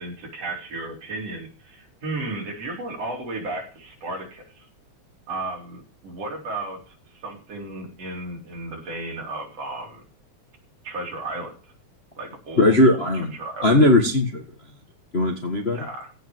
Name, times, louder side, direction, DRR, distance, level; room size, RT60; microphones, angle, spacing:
voice 1, 0.0-4.7 5.3-10.0 10.8-11.5 12.2-13.9 15.7-16.1, right 2 dB, 55° right, 1 dB, 4.9 m, -34 dB
voice 2, 12.6-13.3 13.6-14.4 15.1-15.8, left 1 dB, 30° left, 3 dB, 1.4 m, -18 dB
16.0 x 5.7 x 7.9 m, 0.34 s
omnidirectional pair, 3.4 m